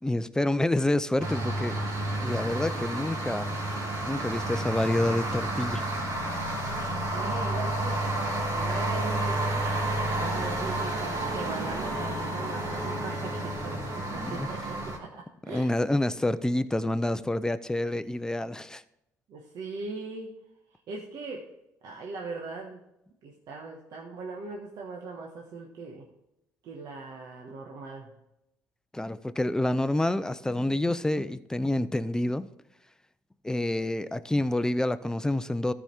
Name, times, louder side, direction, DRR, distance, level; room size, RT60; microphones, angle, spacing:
voice 1, 0.0-1.8 2.2-3.5 4.1-5.8 14.1-14.5 15.5-18.8 28.9-32.5 33.4-35.7, left 1 dB, 10° left, 13 dB, 0.6 m, -28 dB
sound 1, 1.2-15.0, right 1 dB, 50° right, 2.8 m, -30 dB
voice 2, 7.1-8.0 8.5-9.4 10.0-15.7 19.3-20.3 20.7-21.4 21.8-22.8 23.2-26.1 26.6-28.1, right 3 dB, 70° right, 0 dB, 1.3 m, -40 dB
13.0 x 5.0 x 4.4 m, 0.87 s
supercardioid pair, 70°, 7 cm